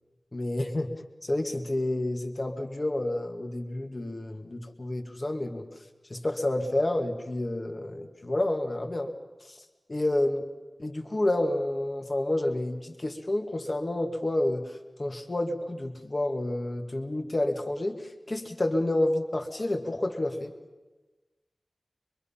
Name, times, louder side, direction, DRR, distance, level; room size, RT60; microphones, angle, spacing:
voice 1, 0.3-0.9 1.2-5.7 6.1-9.1 9.5-9.6 9.9-10.4 10.8-20.5, left 1 dB, 40° left, 4 dB, 2.1 m, -29 dB
24.0 x 23.0 x 5.7 m, 1.2 s
wide cardioid pair, 65°, 0 cm